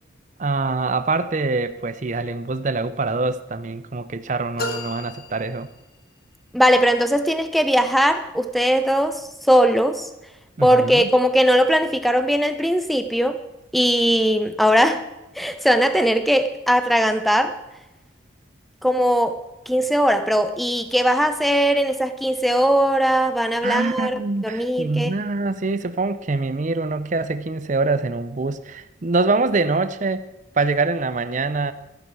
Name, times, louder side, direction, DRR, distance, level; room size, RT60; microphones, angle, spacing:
voice 1, 0.4-5.7 10.6-11.1 23.6-30.2 30.6-31.7, right 3 dB, 40° right, 0.6 m, -24 dB
sound 1, 4.6-6.2, left 1 dB, 50° left, 1.3 m, -33 dB
voice 2, 6.5-10.1 10.6-13.4 13.7-15.0 15.4-17.6 18.8-19.4 19.7-25.1, equal, ahead, 0.7 m, -19 dB
14.0 x 10.0 x 4.7 m
head